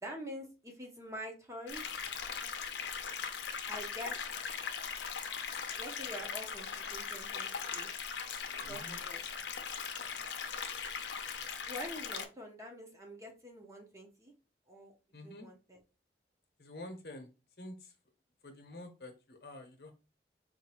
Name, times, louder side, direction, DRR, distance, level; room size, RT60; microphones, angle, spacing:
voice 1, 0.0-1.8 3.7-4.2 5.8-7.9 8.7-9.2 11.7-14.3 14.7-14.9 15.2-15.8, equal, 15° right, 1 dB, 0.8 m, -46 dB
sound 1, 1.7-12.3, left 6 dB, 90° left, 0.6 m, -39 dB
voice 2, 8.6-9.0 15.1-15.5 16.6-17.3 17.6-17.9 18.4-19.9, left 1 dB, 60° left, 4 dB, 0.9 m, -48 dB
4.4 x 2.6 x 2.9 m, 0.30 s
head